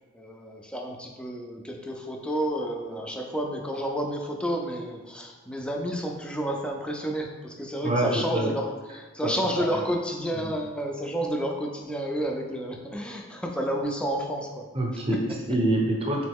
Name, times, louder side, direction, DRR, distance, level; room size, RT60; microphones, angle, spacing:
voice 1, 0.1-14.7, right 1 dB, 5° left, 1 dB, 0.4 m, -30 dB
voice 2, 7.8-8.5 9.2-9.3 9.6-9.8 10.4-10.5 14.7-16.3, right 1 dB, 30° right, -1 dB, 0.7 m, -26 dB
3.7 x 3.0 x 3.5 m, 1.3 s
head